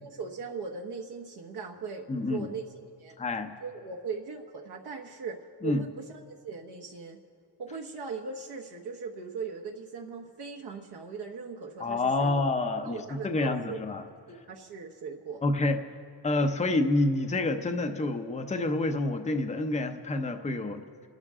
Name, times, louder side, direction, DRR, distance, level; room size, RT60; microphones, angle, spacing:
voice 1, 0.0-2.7 3.0-3.2 3.6-7.2 7.6-12.3 12.8-13.8 14.3-15.4, right 5 dB, 60° right, 0 dB, 1.2 m, -39 dB
voice 2, 2.1-2.5 3.2-3.5 5.6-5.8 11.8-14.0 15.4-15.8 16.2-20.8, left 2 dB, 15° left, 5 dB, 0.8 m, -28 dB
30.0 x 12.0 x 3.7 m, 2.2 s
cardioid pair, 120°, 44 cm